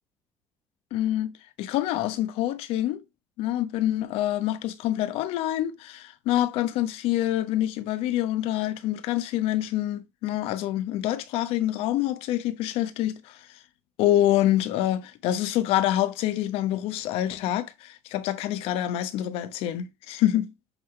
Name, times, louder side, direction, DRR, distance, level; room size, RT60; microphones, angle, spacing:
voice 1, 0.9-3.0 3.4-13.4 14.0-20.5, left 13 dB, 75° left, 1.1 m, -26 dB
8.5 x 3.8 x 3.2 m
supercardioid pair, 75°, 10 cm